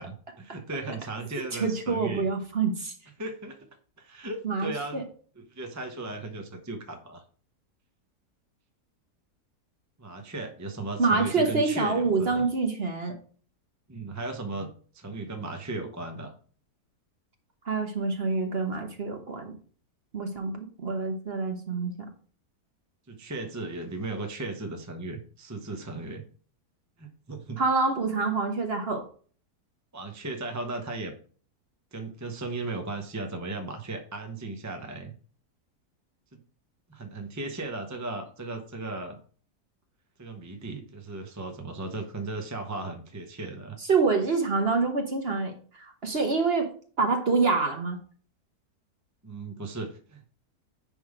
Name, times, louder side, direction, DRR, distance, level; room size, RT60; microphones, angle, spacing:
voice 1, 0.0-2.3 3.2-3.6 4.0-5.0 5.4-7.2 10.0-12.5 13.9-16.3 23.1-26.2 27.0-27.6 29.9-31.1 31.9-35.1 36.3-36.4 36.9-39.2 40.2-43.8 49.2-50.3, right 2 dB, 20° right, 5 dB, 0.5 m, -36 dB
voice 2, 1.6-2.9 4.4-5.0 11.0-13.2 17.6-19.5 20.1-21.9 27.6-29.0 43.9-46.7 47.0-48.0, right 4 dB, 40° right, 5 dB, 1.2 m, -26 dB
10.0 x 3.6 x 4.9 m, 0.43 s
omnidirectional pair, 1.7 m